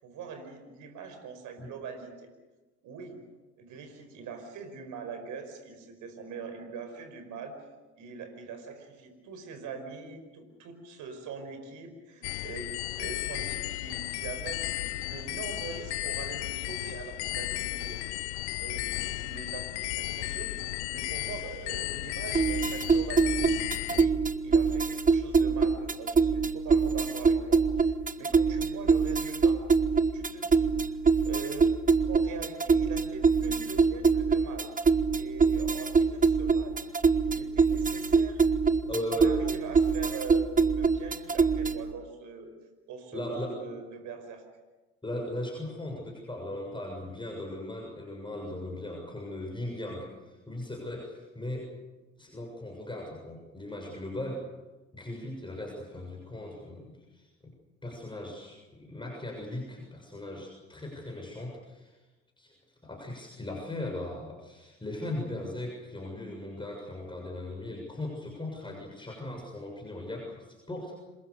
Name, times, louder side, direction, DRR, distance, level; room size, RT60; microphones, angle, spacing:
voice 1, 0.0-2.3 2.8-3.2 3.6-7.5 8.0-12.7 13.0-18.0 18.6-23.5 23.9-24.2 24.4-29.6 30.1-31.0 31.2-31.7 32.0-34.7 35.1-38.4 38.8-42.5 42.9-44.4, right 5 dB, 60° right, 7 dB, 5.2 m, -43 dB
sound 1, 12.2-24.1, left 18 dB, 75° left, 0.8 m, -34 dB
sound 2, 22.3-41.9, right 5 dB, 25° right, 1.3 m, -25 dB
voice 2, 38.9-39.4 43.1-43.6 45.0-51.7 52.2-54.4 54.9-57.5 57.8-61.9 62.4-62.5 62.8-70.9, left 1 dB, 15° left, -1 dB, 7.0 m, -38 dB
27.0 x 22.5 x 6.9 m, 1.2 s
hypercardioid pair, 55°, 34 cm